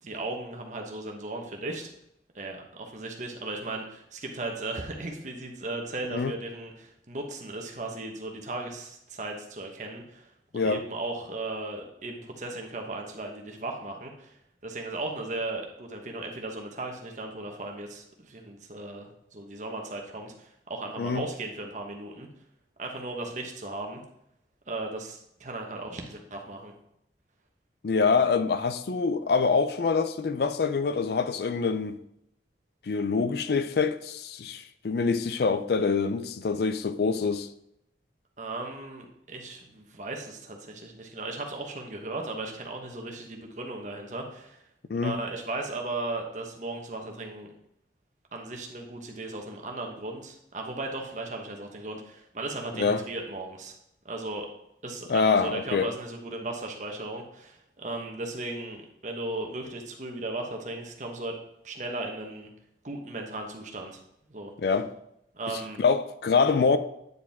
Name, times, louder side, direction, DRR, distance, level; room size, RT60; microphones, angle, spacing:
voice 1, 0.0-1.9 2.3-22.3 22.8-24.0 24.7-26.7 38.4-44.7 45.0-47.5 48.3-53.7 54.0-54.5 54.8-61.4 61.6-62.5 62.8-64.0 64.3-64.5 65.3-65.8, right 2 dB, 40° right, 1.1 m, -36 dB
voice 2, 27.8-32.0 32.8-37.5 44.9-45.2 52.8-53.0 55.1-55.9 64.6-64.9 65.5-66.8, left 5 dB, 60° left, 0.4 m, -25 dB
9.5 x 4.8 x 3.5 m
head